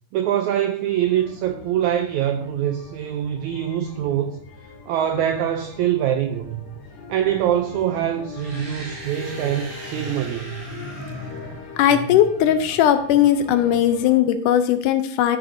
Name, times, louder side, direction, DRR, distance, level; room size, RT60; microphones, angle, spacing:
voice 1, 0.1-4.4 4.9-6.7 7.1-10.6, right 10 dB, 90° right, 1.6 m, -24 dB
sound 1, 0.9-14.1, left 3 dB, 50° left, 2.0 m, -40 dB
sound 2, 8.3-12.2, right 2 dB, 60° right, 4.1 m, -40 dB
voice 2, 11.8-15.4, left 10 dB, 80° left, 2.0 m, -18 dB
13.0 x 6.5 x 2.6 m
omnidirectional pair, 3.9 m